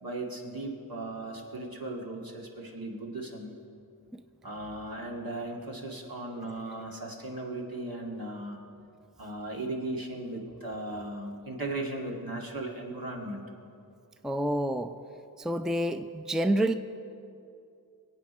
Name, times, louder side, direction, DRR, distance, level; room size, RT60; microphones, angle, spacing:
voice 1, 0.0-3.5 4.4-8.6 9.2-13.5, right 2 dB, 65° right, -1 dB, 2.1 m, -37 dB
voice 2, 14.2-14.9 15.4-16.7, right 1 dB, ahead, 9 dB, 0.5 m, -28 dB
21.5 x 8.8 x 4.3 m, 2.6 s
cardioid pair, 40°, 37 cm